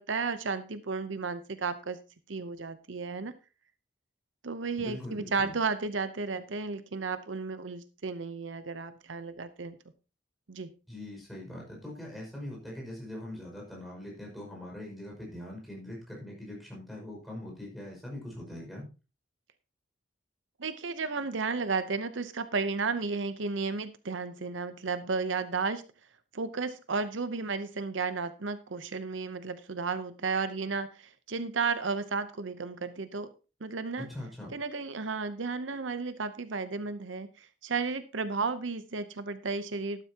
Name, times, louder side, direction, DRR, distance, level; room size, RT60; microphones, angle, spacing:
voice 1, 0.0-2.0 2.3-3.3 4.4-9.8 10.5-10.7 20.6-25.8 26.3-33.3 33.6-34.1 34.5-40.0, right 4 dB, 80° right, 12 dB, 0.8 m, -33 dB
voice 2, 4.8-5.5 10.9-18.9 34.0-34.6, left 1 dB, ahead, -2 dB, 5.7 m, -42 dB
13.0 x 12.0 x 2.9 m, 0.31 s
head